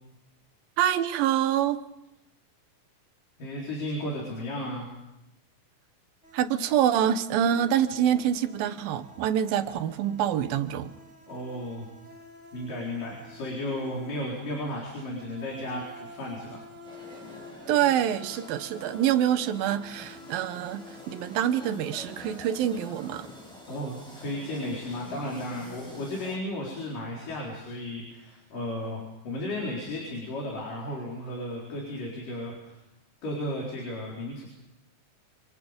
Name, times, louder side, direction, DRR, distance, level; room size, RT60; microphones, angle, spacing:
voice 1, 0.8-1.8 6.3-10.9 17.7-23.3, right 10 dB, 85° right, 2.8 m, -26 dB
voice 2, 3.4-4.9 11.3-11.9 12.5-16.7 23.7-32.8 33.2-34.5, left 1 dB, 65° left, 5.7 m, -34 dB
sound 1, 6.2-23.5, equal, 25° right, 2.0 m, -50 dB
sound 2, 16.8-26.4, equal, ahead, 6.0 m, -47 dB
27.5 x 27.0 x 5.2 m
omnidirectional pair, 4.0 m